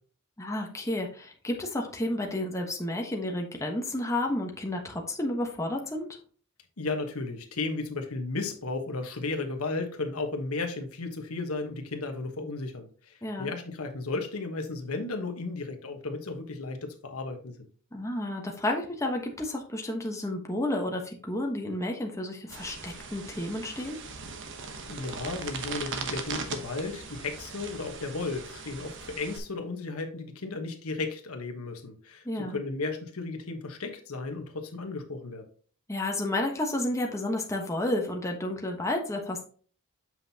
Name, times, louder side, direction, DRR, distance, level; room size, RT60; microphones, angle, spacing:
voice 1, 0.4-6.1 13.2-13.5 17.9-24.0 32.2-32.6 35.9-39.4, left 1 dB, 15° left, 1 dB, 1.1 m, -31 dB
voice 2, 6.8-17.5 24.9-32.2 32.5-35.5, left 3 dB, 90° left, 5 dB, 1.2 m, -34 dB
sound 1, 22.5-29.4, right 5 dB, 60° right, 1.0 m, -39 dB
7.6 x 5.8 x 2.8 m, 0.43 s
head